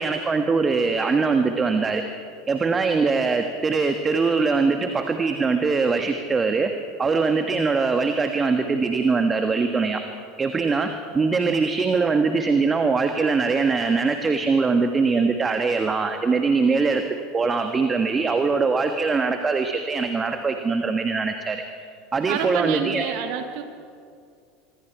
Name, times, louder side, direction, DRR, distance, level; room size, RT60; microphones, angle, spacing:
voice 1, 0.0-2.0 2.5-6.7 7.0-10.0 10.4-17.0 17.3-21.6 22.1-23.1, right 4 dB, 25° right, 6 dB, 1.5 m, -22 dB
voice 2, 22.3-23.6, right 9 dB, 55° right, 7 dB, 1.4 m, -28 dB
25.0 x 25.0 x 4.7 m, 2.3 s
figure-of-eight pair, 75°, 0 cm